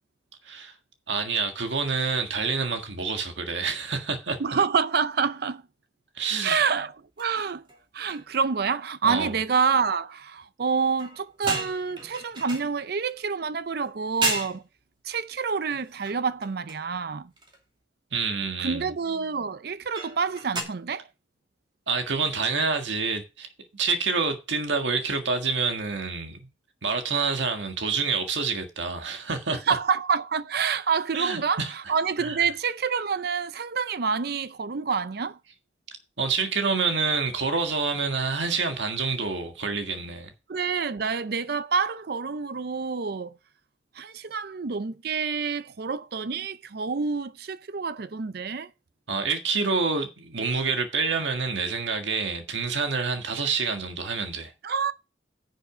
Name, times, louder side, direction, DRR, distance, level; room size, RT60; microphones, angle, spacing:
voice 1, 0.4-0.7 1.1-4.4 6.1-6.6 9.0-9.4 18.1-18.9 21.9-23.5 23.7-26.4 26.8-29.6 31.1-31.7 32.2-32.4 36.2-40.3 49.1-54.5, right 4 dB, 80° right, 1.7 m, -27 dB
voice 2, 4.4-5.6 6.4-7.6 7.9-14.6 15.0-17.3 18.6-21.1 29.7-35.4 40.5-43.4 43.9-48.7 54.6-54.9, right 5 dB, 55° right, 0.5 m, -27 dB
sound 1, 7.2-7.4 7.7-7.8 8.1-8.4 11.0-13.2 13.8-13.9 14.2-14.6 15.7-16.9 17.4-17.6 20.0-20.6, right 2 dB, 25° right, 2.4 m, -33 dB
10.5 x 6.4 x 4.9 m
head